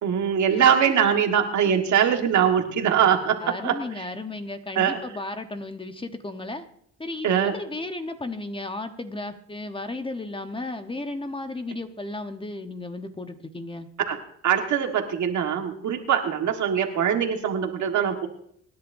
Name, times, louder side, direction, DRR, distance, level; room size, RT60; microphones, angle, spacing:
voice 1, 0.0-4.0 4.7-5.0 7.2-7.5 14.1-18.3, right 8 dB, 70° right, 4 dB, 1.7 m, -22 dB
voice 2, 3.4-6.6 7.0-13.9, left 2 dB, 15° left, 7 dB, 1.2 m, -34 dB
25.5 x 10.5 x 2.7 m, 0.68 s
cardioid pair, 90°, 30 cm